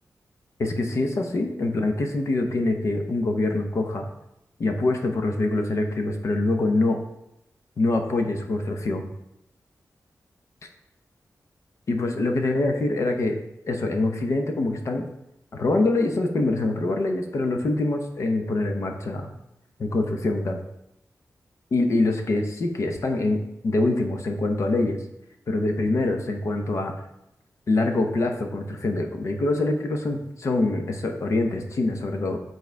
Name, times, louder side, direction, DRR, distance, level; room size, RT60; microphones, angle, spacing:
voice 1, 0.6-4.1 4.6-7.0 7.8-9.1 11.9-13.4 13.7-15.0 15.5-19.3 19.8-20.6 21.7-25.0 25.5-26.9 27.7-32.4, left 2 dB, 50° left, 4 dB, 0.8 m, -24 dB
7.3 x 3.9 x 4.6 m, 0.86 s
wide cardioid pair, 180°, 6 cm